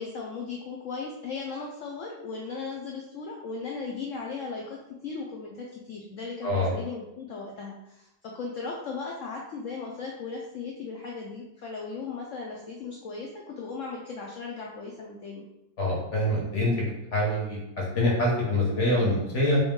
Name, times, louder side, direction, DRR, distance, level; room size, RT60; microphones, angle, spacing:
voice 1, 0.0-15.5, left 4 dB, 80° left, -1 dB, 0.7 m, -37 dB
voice 2, 6.4-6.7 15.8-16.9 17.1-17.6 18.0-19.6, left 1 dB, 50° left, -3 dB, 1.1 m, -25 dB
3.5 x 2.8 x 3.5 m, 0.90 s
omnidirectional pair, 1.9 m